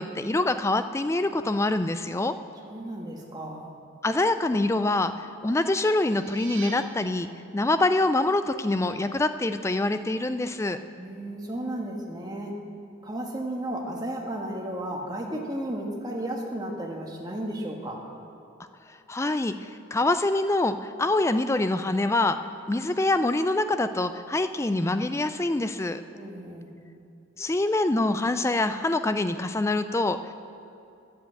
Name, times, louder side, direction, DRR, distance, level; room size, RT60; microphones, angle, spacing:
voice 1, 0.0-2.3 4.0-10.8 19.1-22.4 22.7-26.0 27.4-30.3, left 2 dB, 15° left, 10 dB, 0.3 m, -25 dB
voice 2, 2.6-3.7 11.0-12.5 13.0-18.0 26.1-26.7, right 1 dB, 20° right, -1 dB, 1.4 m, -34 dB
sound 1, 5.9-6.7, right 6 dB, 75° right, 1.8 m, -42 dB
10.5 x 7.8 x 7.9 m, 2.7 s
head